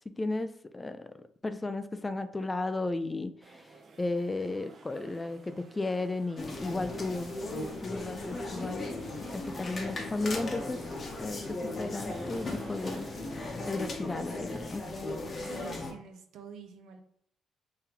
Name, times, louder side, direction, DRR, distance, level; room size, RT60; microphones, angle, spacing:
voice 1, 0.2-1.1 1.4-3.7 4.0-7.4 7.8-8.9 9.3-10.8 11.2-13.1 13.4-14.9, left 2 dB, 20° left, 11 dB, 0.3 m, -34 dB
sound 1, 3.4-13.5, right 3 dB, 45° right, 0.8 m, -53 dB
sound 2, 6.4-15.9, left 2 dB, 40° left, 0.8 m, -37 dB
voice 2, 15.4-17.0, right 5 dB, 80° right, 5 dB, 0.6 m, -48 dB
3.6 x 3.4 x 2.9 m, 0.63 s
cardioid pair, 90°, 0 cm